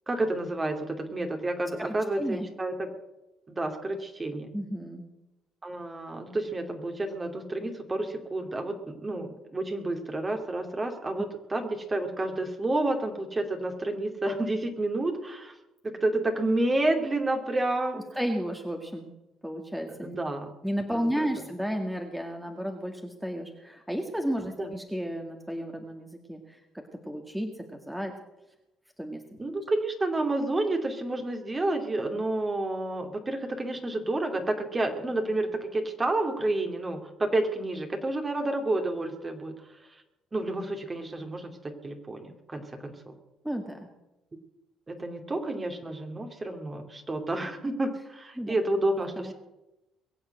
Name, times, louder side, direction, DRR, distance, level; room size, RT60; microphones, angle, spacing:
voice 1, 0.1-2.9 3.5-4.5 5.6-15.5 16.0-18.0 20.0-20.5 20.9-21.3 24.6-24.7 29.4-40.0 40.3-43.1 44.9-49.3, right 2 dB, 25° right, 5 dB, 2.6 m, -30 dB
voice 2, 4.5-5.1 17.9-19.1 19.4-20.2 20.6-28.1 29.0-29.4 43.4-43.8 48.4-48.5 49.2-49.3, equal, 5° right, 3 dB, 1.9 m, -33 dB
22.0 x 7.4 x 7.8 m, 0.98 s
supercardioid pair, 75°, 0 cm